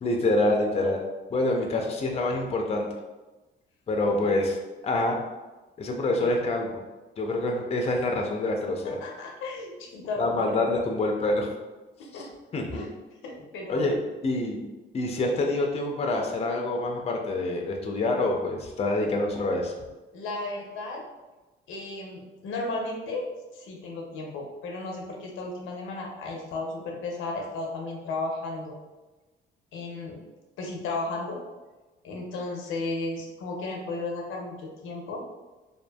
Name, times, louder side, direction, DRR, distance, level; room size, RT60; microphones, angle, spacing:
voice 1, 0.0-1.0 1.3-2.9 3.9-4.6 4.8-5.2 5.8-6.8 7.2-9.0 10.2-11.5 12.1-12.2 12.5-12.9 13.7-13.9 14.2-14.6 14.9-19.7, left 2 dB, 30° left, 1 dB, 0.4 m, -26 dB
voice 2, 8.8-10.7 12.0-12.3 12.7-12.9 13.2-14.0 20.1-21.0 21.7-23.3 23.5-28.7 29.7-30.2 30.6-31.4 32.0-35.2, left 2 dB, 85° left, 0 dB, 0.6 m, -34 dB
2.6 x 2.5 x 2.2 m, 1.1 s
cardioid pair, 90°, 20 cm